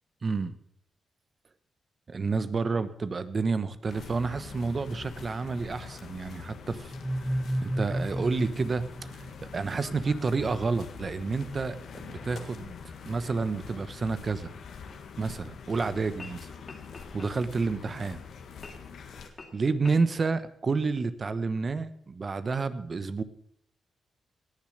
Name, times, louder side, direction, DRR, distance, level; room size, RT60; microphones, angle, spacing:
voice 1, 0.2-0.5 2.1-6.9 7.6-11.8 12.0-12.7 13.1-14.5 15.2-16.4 17.1-18.2 19.5-23.2, right 4 dB, 45° right, 13 dB, 1.2 m, -29 dB
sound 1, 3.9-19.3, left 6 dB, 75° left, 1.8 m, -44 dB
sound 2, 6.9-9.7, right 1 dB, ahead, 0.5 m, -32 dB
sound 3, 14.9-15.0 16.0-16.4 16.6-17.7 18.6-18.9 19.4-19.5 19.8-20.0, left 3 dB, 40° left, 3.2 m, -46 dB
18.5 x 7.2 x 6.7 m, 0.70 s
supercardioid pair, 60°, 0 cm